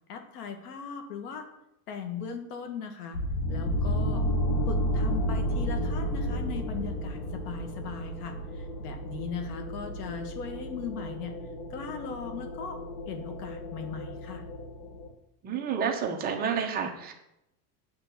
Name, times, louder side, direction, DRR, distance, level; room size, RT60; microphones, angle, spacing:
voice 1, 0.1-1.5 1.9-4.3 4.7-11.3 11.7-12.8 13.1-14.4, left 6 dB, 90° left, 6 dB, 1.6 m, -39 dB
sound 1, 3.1-15.1, equal, 65° left, 1.4 m, -32 dB
voice 2, 15.4-17.1, right 6 dB, 20° right, 3 dB, 0.7 m, -30 dB
8.8 x 3.7 x 6.7 m, 0.86 s
supercardioid pair, 165°, 45 cm